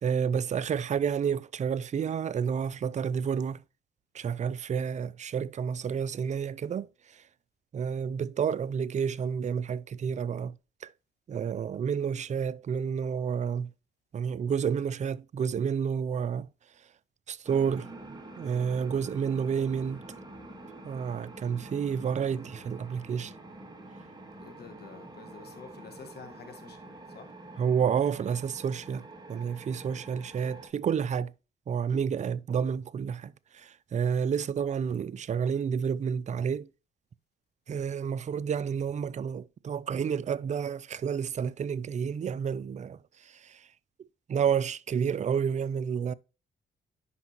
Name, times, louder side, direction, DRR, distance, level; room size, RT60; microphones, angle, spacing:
voice 1, 0.0-3.6 4.1-7.2 7.7-10.9 11.3-13.7 14.1-16.5 17.3-17.9 18.4-20.1 20.8-23.3 27.6-31.3 31.7-36.7 37.7-43.7 44.3-46.1, right 7 dB, 35° right, 0.4 m, -30 dB
sound 1, 17.4-30.7, right 2 dB, 20° right, 2.1 m, -47 dB
voice 2, 24.4-27.3, left 5 dB, 55° left, 1.5 m, -49 dB
9.8 x 5.1 x 2.9 m
cardioid pair, 90°, 20 cm